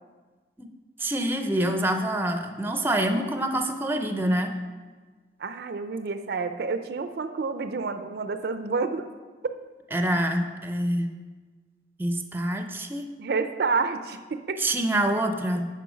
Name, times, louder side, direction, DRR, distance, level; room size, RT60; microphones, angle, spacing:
voice 1, 1.0-4.5 9.9-11.1 12.0-13.0 14.6-15.7, right 1 dB, 10° right, 6 dB, 0.5 m, -26 dB
voice 2, 5.4-9.1 13.2-14.6, right 4 dB, 60° right, 9 dB, 0.5 m, -29 dB
8.5 x 5.5 x 5.1 m, 1.4 s
head